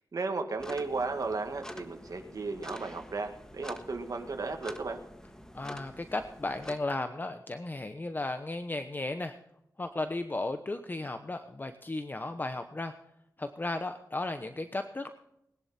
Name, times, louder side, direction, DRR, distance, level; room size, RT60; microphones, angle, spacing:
voice 1, 0.1-5.0, right 3 dB, 60° right, 4 dB, 2.1 m, -34 dB
sound 1, 0.6-6.8, equal, 10° left, 1.4 m, -47 dB
voice 2, 5.5-9.4 9.8-12.9 13.4-15.1, left 2 dB, 30° left, 8 dB, 0.9 m, -35 dB
20.0 x 11.0 x 4.3 m, 0.79 s
wide cardioid pair, 75°, 7 cm